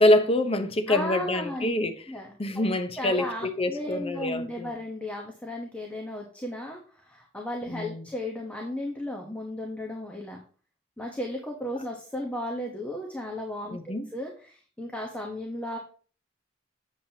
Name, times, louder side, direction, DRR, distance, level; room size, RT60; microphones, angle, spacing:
voice 1, 0.0-1.9 2.4-4.7 7.7-8.1 13.7-14.1, left 1 dB, 35° left, 0.8 m, -25 dB
voice 2, 0.9-1.7 2.1-2.7 3.0-10.4 11.0-15.8, left 1 dB, 10° left, 1.0 m, -35 dB
7.4 x 7.3 x 2.8 m
head